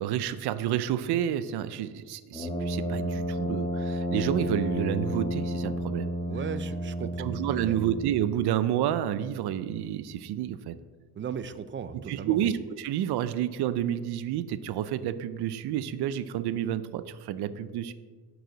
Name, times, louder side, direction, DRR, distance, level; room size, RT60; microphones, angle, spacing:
voice 1, 0.0-6.1 7.2-10.7 12.1-17.9, right 11 dB, 80° right, 13 dB, 0.6 m, -29 dB
Brass instrument, 2.3-8.2, equal, 10° left, 1.3 m, -31 dB
voice 2, 6.3-7.3 7.7-7.8 11.2-12.4, right 7 dB, 30° right, 13 dB, 0.4 m, -36 dB
12.5 x 4.9 x 3.9 m, 1.5 s
cardioid pair, 140°, 39 cm